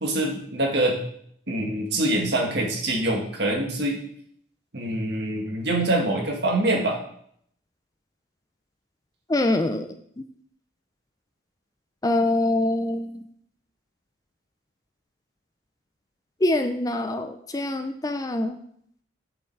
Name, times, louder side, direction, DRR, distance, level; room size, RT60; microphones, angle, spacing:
voice 1, 0.0-1.0 1.5-4.0 4.7-7.0, right 1 dB, 55° right, 1 dB, 1.9 m, -24 dB
voice 2, 9.3-9.9 12.0-13.2 16.4-18.6, left 2 dB, 20° left, 7 dB, 0.4 m, -24 dB
7.9 x 6.7 x 4.7 m, 0.66 s
head